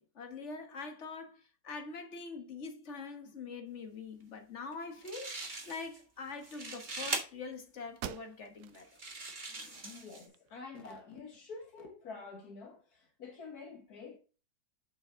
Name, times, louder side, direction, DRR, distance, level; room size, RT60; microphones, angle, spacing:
voice 1, 0.0-8.9 9.5-9.9, left 4 dB, 45° left, 1.6 m, -44 dB
sound 1, 4.7-4.8 5.0-6.0 6.3-7.2 8.0-8.1 8.7-10.3, right 3 dB, 30° right, 1.5 m, -40 dB
sound 2, 7.4-7.5 7.9-8.8 9.3-9.4 9.9-10.8, right 12 dB, 75° right, 1.1 m, -46 dB
voice 2, 9.8-14.2, left 4 dB, 65° left, 1.8 m, -48 dB
7.1 x 6.0 x 3.8 m
omnidirectional pair, 1.7 m